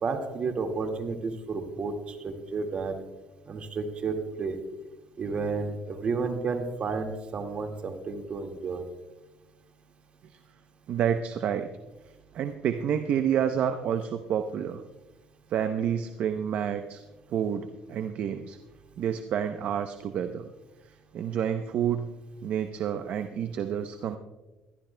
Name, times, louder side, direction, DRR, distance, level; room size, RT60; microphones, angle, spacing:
voice 1, 0.0-3.0 3.5-4.6 5.2-8.9, right 4 dB, 45° right, 4 dB, 1.9 m, -31 dB
voice 2, 10.9-11.7 12.3-14.8 15.5-18.6 19.0-20.5 21.1-22.1 22.4-24.2, right 8 dB, 60° right, 8 dB, 0.7 m, -29 dB
21.5 x 13.5 x 2.2 m, 1.1 s
supercardioid pair, 90°, 3 cm